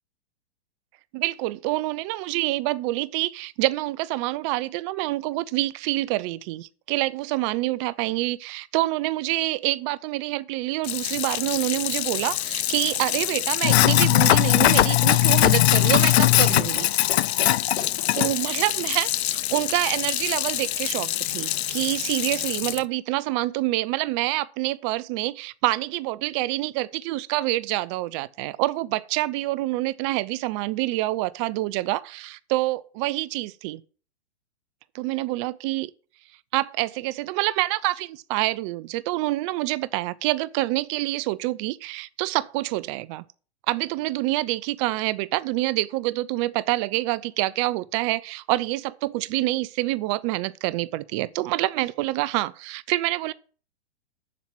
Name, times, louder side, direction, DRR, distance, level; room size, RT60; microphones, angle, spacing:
voice 1, 1.1-16.9 18.1-33.8 34.9-35.9 36.5-43.2 43.7-53.3, right 18 dB, 30° right, 0.4 m, -27 dB
Sink (filling or washing), 10.8-22.8, left 14 dB, 70° left, 0.5 m, -22 dB
sound 1, 15.8-20.6, left 4 dB, 30° left, 4.5 m, -41 dB
7.4 x 7.2 x 7.6 m
hypercardioid pair, 130°, 33 cm